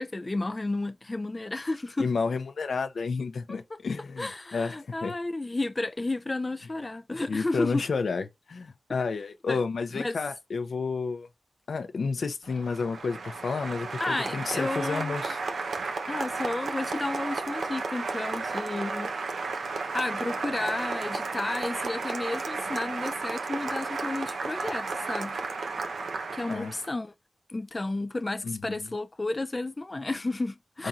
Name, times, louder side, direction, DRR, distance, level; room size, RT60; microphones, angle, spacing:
voice 1, 0.0-2.1 3.5-3.6 4.2-7.8 9.5-9.6 9.9-10.2 14.0-15.2 16.1-19.1 19.4-25.4 26.3-27.1 27.5-30.9, left 2 dB, 30° left, 0.4 m, -32 dB
voice 2, 2.0-5.1 7.3-11.3 11.7-15.4 26.5-26.7 28.4-28.9 30.8-30.9, left 4 dB, 80° left, 0.7 m, -31 dB
Applause, 12.4-26.9, right 4 dB, 85° right, 0.8 m, -33 dB
5.1 x 4.2 x 2.5 m
cardioid pair, 60°, 0 cm